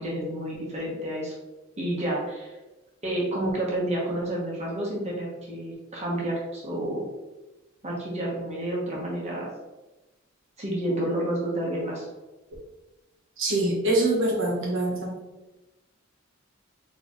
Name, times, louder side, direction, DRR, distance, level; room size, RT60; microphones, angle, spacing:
voice 1, 0.0-1.3 1.8-2.5 3.0-7.0 7.8-9.5 10.6-12.0, right 1 dB, 35° right, -4 dB, 1.0 m, -30 dB
voice 2, 13.4-15.1, right 1 dB, 70° right, -2 dB, 1.3 m, -24 dB
4.4 x 3.0 x 3.0 m, 1.1 s
head